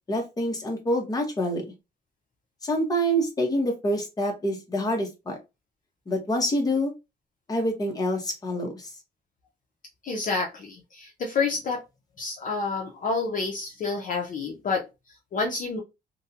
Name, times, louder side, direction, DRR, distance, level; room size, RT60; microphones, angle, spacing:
voice 1, 0.1-1.7 2.6-5.4 6.1-6.9 7.5-8.9, equal, 20° left, 1 dB, 0.8 m, -26 dB
voice 2, 10.0-11.8 12.2-14.8 15.3-15.8, left 4 dB, 50° left, 1 dB, 0.6 m, -28 dB
2.5 x 2.1 x 2.7 m, 0.24 s
cardioid pair, 135°, 18 cm